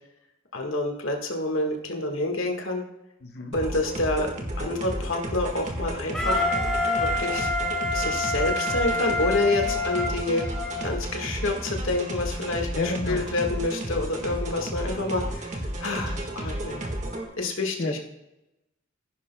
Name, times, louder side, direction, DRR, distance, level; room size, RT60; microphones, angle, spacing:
voice 1, 0.5-2.8 3.5-4.3 4.6-6.5 7.1-7.5 7.9-10.4 10.8-16.8 17.4-18.0, left 2 dB, 85° left, 2 dB, 1.6 m, -28 dB
voice 2, 3.2-3.5 12.7-13.3 17.8-18.0, left 3 dB, 50° left, 3 dB, 0.9 m, -29 dB
sound 1, 3.5-17.2, right 1 dB, 35° right, 1.6 m, -32 dB
Wind instrument woodwind instrument, 6.1-10.9, left 2 dB, 5° left, 1.3 m, -27 dB
16.0 x 10.5 x 2.2 m, 0.92 s
head